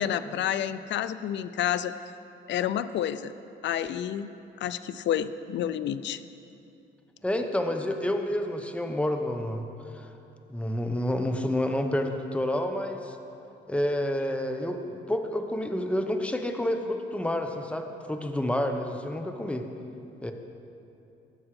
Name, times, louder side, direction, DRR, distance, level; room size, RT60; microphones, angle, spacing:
voice 1, 0.0-1.9 2.5-3.3 3.6-4.3 4.6-6.2, left 10 dB, 65° left, 14 dB, 0.5 m, -29 dB
voice 2, 7.2-9.7 9.9-10.1 10.5-13.2 13.7-19.7 20.2-20.3, left 1 dB, 5° left, 5 dB, 1.0 m, -29 dB
18.0 x 7.3 x 4.8 m, 2.8 s
cardioid pair, 90°, 20 cm